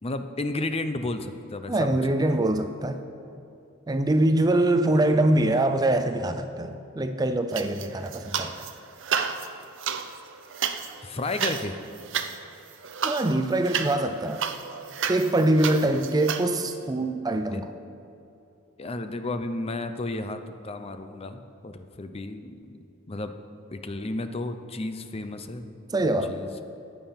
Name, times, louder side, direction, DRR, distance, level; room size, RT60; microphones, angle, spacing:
voice 1, 0.0-2.3 4.9-5.1 11.0-11.8 17.5-17.6 18.8-22.8 23.1-23.3 23.7-25.7 26.0-26.6, left 2 dB, 25° left, 9 dB, 0.6 m, -33 dB
voice 2, 1.7-3.0 3.9-8.5 13.0-14.4 15.1-17.7 25.9-26.3, right 1 dB, 20° right, 8 dB, 0.4 m, -24 dB
sound 1, 7.5-8.7 9.0-16.5, right 7 dB, 60° right, 0.6 m, -31 dB
14.5 x 8.9 x 5.7 m, 2.7 s
head